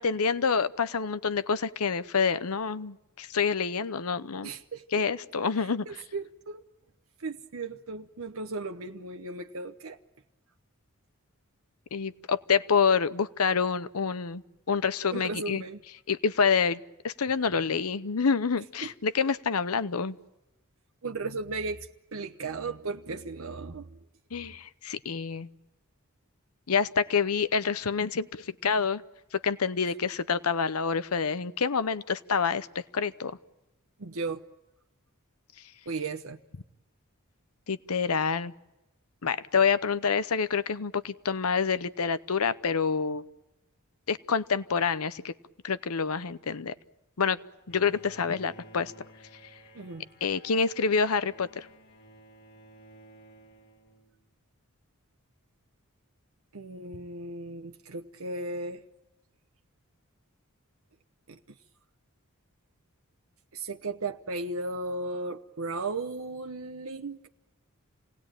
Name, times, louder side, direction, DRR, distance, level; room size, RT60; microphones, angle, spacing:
voice 1, 0.0-4.5 4.9-6.0 11.9-14.4 14.7-15.6 16.1-16.8 17.0-20.2 24.3-25.5 26.7-29.0 29.3-33.3 37.7-38.5 39.2-43.2 44.1-45.3 45.6-46.7 47.2-47.4 47.7-48.9 50.2-51.7, left 5 dB, 90° left, 15 dB, 0.8 m, -27 dB
voice 2, 4.4-5.0 5.6-6.6 7.2-10.0 15.1-15.8 18.8-18.9 21.0-24.0 34.0-34.4 35.9-36.4 49.7-50.1 56.5-58.8 61.3-61.4 63.5-67.3, right 3 dB, 70° right, 4 dB, 0.9 m, -36 dB
Bowed string instrument, 47.7-54.5, equal, 50° left, 2.1 m, -54 dB
28.0 x 19.0 x 9.0 m, 1.0 s
head